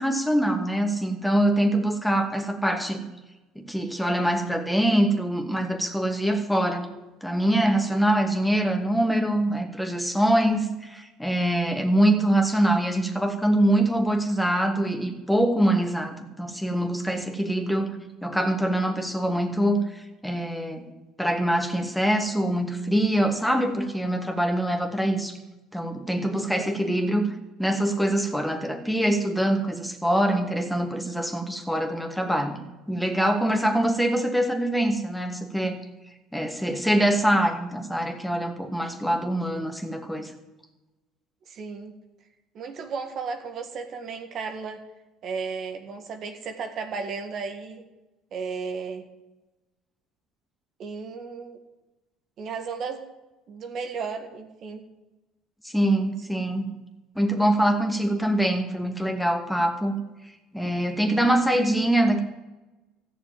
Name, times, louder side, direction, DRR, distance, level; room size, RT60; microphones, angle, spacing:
voice 1, 0.0-3.0 3.6-6.9 7.2-17.9 18.2-20.8 21.2-25.4 25.7-27.3 27.6-32.6 32.9-35.8 36.3-40.3 55.6-56.7 57.2-60.0 60.5-62.2, right 1 dB, 5° left, 4 dB, 2.3 m, -24 dB
voice 2, 26.3-26.8 41.5-41.9 42.5-44.8 45.2-47.8 48.3-49.1 50.8-51.6 52.4-53.1 53.5-54.8, right 5 dB, 50° right, 5 dB, 1.9 m, -34 dB
14.5 x 7.0 x 9.1 m, 1.1 s
hypercardioid pair, 70°, 0 cm